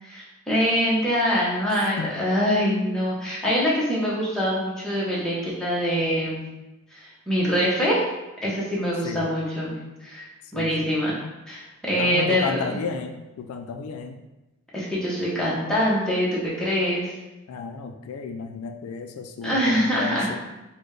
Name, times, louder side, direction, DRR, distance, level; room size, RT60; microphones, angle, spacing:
voice 1, 0.0-6.4 6.9-8.0 8.4-10.3 10.5-11.2 11.5-12.6 14.7-17.1 19.4-20.3, equal, 5° left, -7 dB, 0.9 m, -24 dB
voice 2, 10.5-11.0 12.0-14.2 17.5-20.4, left 5 dB, 85° left, 5 dB, 0.3 m, -33 dB
4.1 x 2.2 x 3.2 m, 1.0 s
head